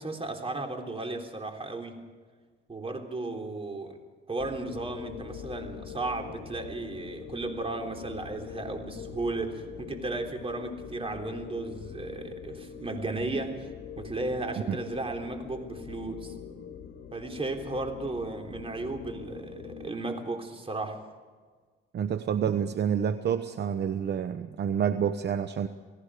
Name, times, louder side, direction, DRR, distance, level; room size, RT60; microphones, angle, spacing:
voice 1, 0.0-2.0 2.7-4.0 4.3-13.7 14.0-16.3 17.1-21.0, right 2 dB, 30° right, 3 dB, 3.7 m, -35 dB
sound 1, 4.4-19.9, left 8 dB, 75° left, 1.7 m, -43 dB
voice 2, 21.9-25.7, right 8 dB, 60° right, 10 dB, 1.0 m, -28 dB
29.0 x 18.0 x 5.0 m, 1.5 s
cardioid pair, 90°, 20 cm